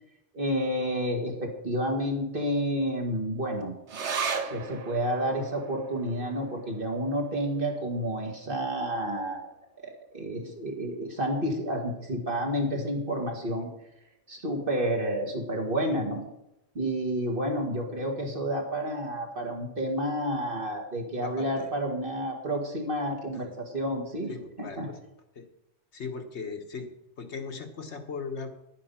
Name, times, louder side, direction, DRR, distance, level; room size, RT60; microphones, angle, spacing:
voice 1, 0.3-4.1 4.4-9.5 9.8-13.7 14.3-16.2 16.7-24.3 24.6-24.9, equal, 45° right, 1 dB, 2.4 m, -30 dB
sound 1, 3.9-10.7 11.0-11.1 11.4-12.1 12.6-12.7, right 5 dB, 70° right, 1.4 m, -39 dB
voice 2, 21.2-21.7 23.3-23.5 24.3-25.0 25.3-25.4 25.9-26.9 27.2-28.5, left 5 dB, 65° left, 6 dB, 1.4 m, -38 dB
10.5 x 9.7 x 5.7 m, 0.86 s
omnidirectional pair, 1.3 m